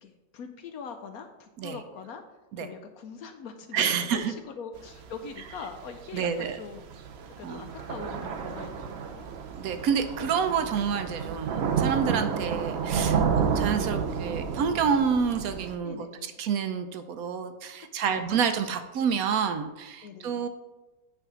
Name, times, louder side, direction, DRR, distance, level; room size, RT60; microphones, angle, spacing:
voice 1, 0.0-2.2 2.6-6.9 7.4-9.4 15.8-16.4 17.8-18.4 20.0-20.5, left 5 dB, 70° left, 6 dB, 1.0 m, -42 dB
voice 2, 3.7-4.3 6.1-6.6 7.4-7.6 9.6-16.0 16.4-20.5, right 7 dB, 65° right, 8 dB, 0.9 m, -28 dB
Thunder / Rain, 4.8-15.7, right 6 dB, 85° right, 0.5 m, -31 dB
9.1 x 3.5 x 6.1 m, 1.1 s
omnidirectional pair, 1.9 m